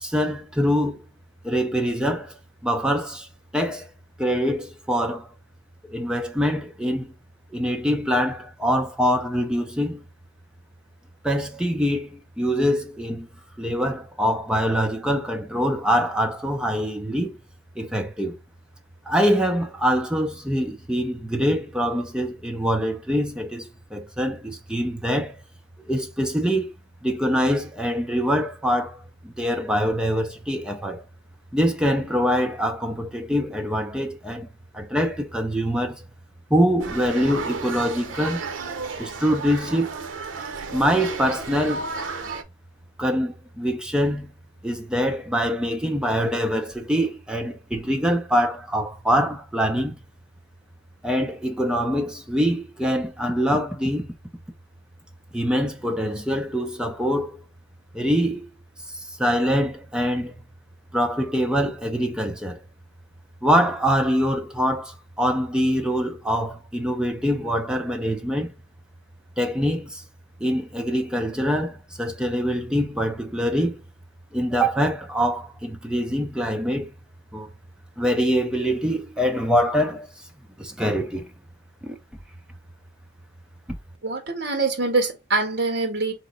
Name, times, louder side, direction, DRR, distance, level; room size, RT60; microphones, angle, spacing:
voice 1, 0.0-1.0 1.4-2.3 2.6-3.3 3.5-3.9 4.2-5.3 5.8-7.1 7.5-10.0 11.2-13.3 13.6-17.4 17.8-18.3 19.1-25.3 25.9-26.7 27.0-31.0 31.5-34.5 34.7-36.0 36.5-38.4 39.0-39.9 40.7-41.9 43.0-44.3 44.6-50.0 51.0-54.1 55.3-57.4 57.9-58.5 58.9-60.3 60.9-62.6 63.4-68.5 69.4-70.0 70.4-73.8 74.3-76.9 77.3-77.5 78.0-80.1 80.6-81.3 81.8-82.0, equal, 5° right, 0.6 m, -24 dB
Large Hall Ambiance with School Children, 36.8-42.4, right 4 dB, 85° right, 0.8 m, -33 dB
voice 2, 84.0-86.1, right 3 dB, 60° right, 1.6 m, -24 dB
4.2 x 3.0 x 3.8 m
head